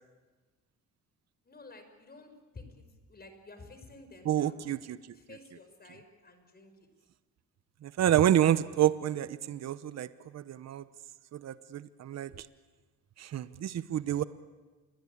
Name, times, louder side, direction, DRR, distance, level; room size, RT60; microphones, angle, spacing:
voice 1, 1.4-4.6 5.1-6.7, left 3 dB, 30° left, 8 dB, 5.4 m, -52 dB
voice 2, 4.2-5.0 7.8-10.8 11.3-12.5 13.2-14.2, right 11 dB, 60° right, 14 dB, 1.0 m, -28 dB
28.0 x 22.5 x 8.6 m, 1.3 s
cardioid pair, 90°, 30 cm